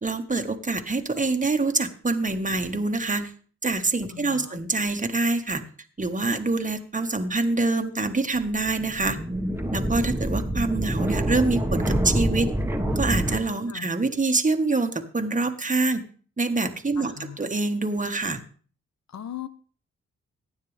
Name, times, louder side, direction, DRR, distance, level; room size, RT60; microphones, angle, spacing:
voice 1, 0.0-3.3 3.6-5.6 6.0-9.2 9.7-12.5 12.9-16.0 16.4-18.4, right 3 dB, 25° right, 7 dB, 1.6 m, -25 dB
voice 2, 4.1-4.6 13.7-13.9 17.0-17.5 19.1-19.5, left 10 dB, 65° left, 13 dB, 1.1 m, -39 dB
sound 1, 8.4-13.4, right 1 dB, 10° right, 1.6 m, -26 dB
15.0 x 9.6 x 3.4 m, 0.43 s
cardioid pair, 50°, 29 cm